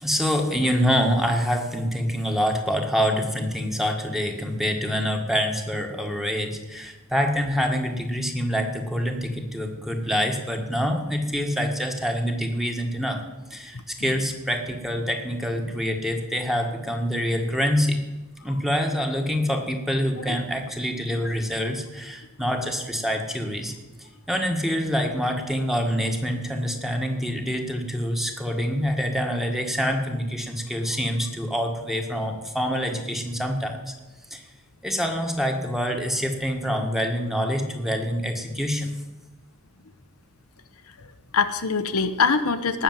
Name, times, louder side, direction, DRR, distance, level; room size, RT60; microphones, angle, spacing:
voice 1, 0.0-13.2 13.5-18.0 18.4-23.7 24.3-33.9 34.3-34.4 34.8-38.9, equal, ahead, 3 dB, 1.6 m, -26 dB
voice 2, 13.7-14.1 18.4-18.5 20.2-20.4 41.0-42.8, left 5 dB, 80° left, 10 dB, 0.9 m, -25 dB
18.5 x 7.0 x 7.5 m, 1.1 s
head